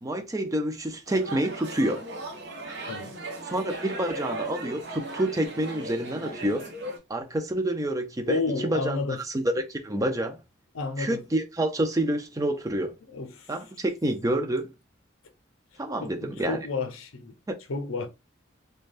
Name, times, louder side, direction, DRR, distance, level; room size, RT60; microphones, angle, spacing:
voice 1, 0.0-2.0 3.5-6.7 7.1-9.0 9.3-10.4 11.0-12.9 13.5-14.6 15.8-16.6 17.5-17.6, right 1 dB, 15° right, 0.4 m, -28 dB
sound 1, 1.1-7.0, right 2 dB, 55° right, 0.8 m, -37 dB
voice 2, 2.9-3.2 8.3-9.2 10.7-11.2 13.0-13.6 16.0-17.3 17.7-18.1, left 3 dB, 75° left, 0.6 m, -31 dB
3.3 x 2.2 x 2.5 m
head